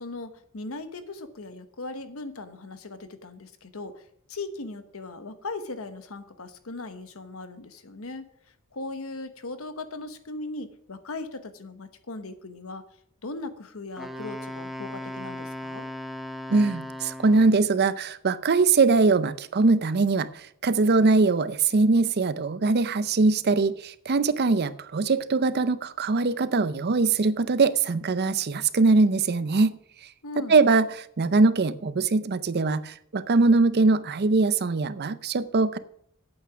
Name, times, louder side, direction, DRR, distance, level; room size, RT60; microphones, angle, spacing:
voice 1, 0.0-8.2 8.7-12.8 13.2-15.9 30.2-30.6, left 2 dB, 80° left, 10 dB, 1.1 m, -38 dB
Wind instrument woodwind instrument, 14.0-17.7, left 1 dB, ahead, 0.7 m, -37 dB
voice 2, 16.5-20.3 20.6-29.8 30.5-35.8, right 3 dB, 50° right, 14 dB, 0.6 m, -22 dB
8.9 x 8.5 x 6.0 m, 0.67 s
head